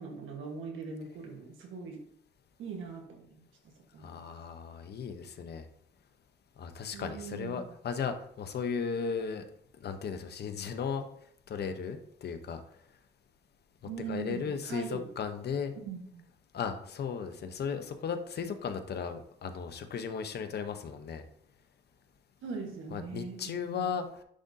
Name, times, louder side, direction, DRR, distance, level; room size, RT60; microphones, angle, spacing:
voice 1, 0.0-2.0 2.6-3.5 3.9-4.2 6.9-7.6 13.8-15.1 15.8-16.2 22.4-23.9, right 5 dB, 80° right, 1 dB, 1.4 m, -41 dB
voice 2, 4.0-5.7 6.6-9.4 9.8-11.1 11.5-12.6 14.1-15.7 16.5-21.2 22.9-24.2, left 6 dB, 55° left, 8 dB, 0.9 m, -36 dB
10.0 x 3.9 x 2.7 m, 0.69 s
cardioid pair, 90°, 20 cm